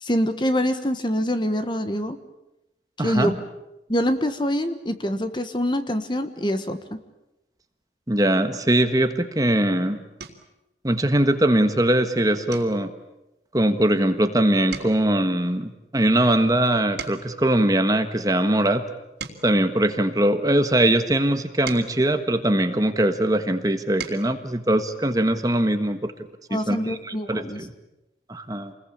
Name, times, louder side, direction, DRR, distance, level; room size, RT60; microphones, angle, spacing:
voice 1, 0.0-2.2 3.0-3.3 3.9-6.8 26.5-27.6, equal, 25° left, 9 dB, 1.4 m, -25 dB
voice 2, 3.0-3.3 8.1-10.0 10.8-12.9 13.5-18.8 19.4-26.1 26.5-27.7 28.3-28.7, right 1 dB, 20° right, 8 dB, 1.4 m, -21 dB
sound 1, 9.3-9.6 10.2-10.6 11.1-11.4 11.7-11.9 12.5-14.3 14.6-17.5 18.1-20.6 21.2-23.1 23.6-24.4 25.7-25.8 26.1-26.3, right 6 dB, 85° right, 3.4 m, -41 dB
28.0 x 21.0 x 8.7 m, 0.94 s
head